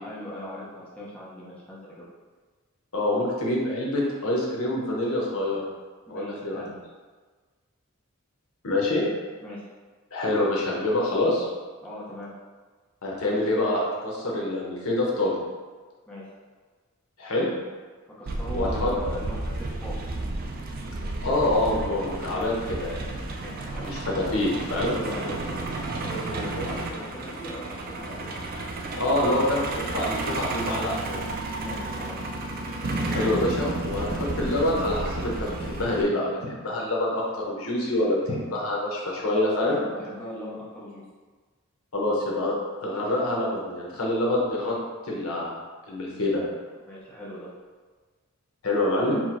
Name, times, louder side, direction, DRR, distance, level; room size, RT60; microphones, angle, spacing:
voice 1, 0.0-2.1 6.1-6.7 9.4-9.7 11.8-12.3 16.1-16.2 18.1-20.0 23.4-23.9 24.9-28.4 31.6-32.2 34.0-34.2 39.6-41.0 46.9-47.5, equal, 5° left, -7 dB, 0.7 m, -39 dB
voice 2, 2.9-5.6 6.1-6.6 8.6-9.0 10.1-11.5 13.0-15.4 17.2-17.5 18.5-18.9 21.2-23.0 23.8-24.9 26.6-26.7 29.0-31.3 33.0-34.1 34.4-39.8 41.9-42.5 42.8-44.7 45.1-45.5 45.9-46.4 48.6-49.2, left 1 dB, 75° left, -3 dB, 1.0 m, -26 dB
Truck, 18.3-36.0, right 2 dB, 45° right, 0.4 m, -32 dB
4.6 x 2.1 x 4.3 m, 1.4 s
head